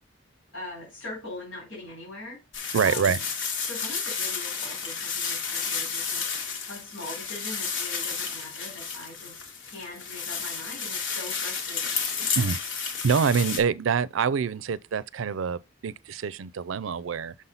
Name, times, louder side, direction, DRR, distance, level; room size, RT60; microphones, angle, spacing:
voice 1, 0.5-2.4 2.8-3.2 3.6-6.2 6.7-12.0, left 2 dB, 90° left, 4.1 m, -41 dB
sound 1, 2.5-13.6, left 5 dB, 75° left, 1.5 m, -32 dB
voice 2, 2.7-3.2 12.4-12.6 13.0-17.3, right 6 dB, 90° right, 0.4 m, -26 dB
6.3 x 5.6 x 3.9 m
head